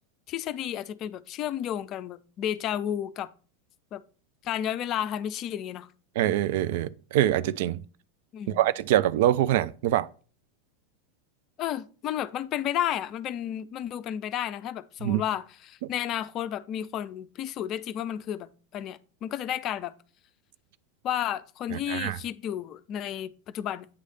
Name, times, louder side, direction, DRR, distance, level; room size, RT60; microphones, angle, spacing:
voice 1, 0.3-3.3 3.9-4.0 4.4-5.9 8.3-8.6 11.6-19.9 21.0-23.9, left 10 dB, 40° left, 0.4 m, -32 dB
voice 2, 6.2-7.8 8.5-10.1 15.0-15.2 15.8-15.9 21.7-22.2, right 12 dB, 55° right, 0.3 m, -24 dB
8.8 x 3.2 x 5.2 m
figure-of-eight pair, 85°, 0 cm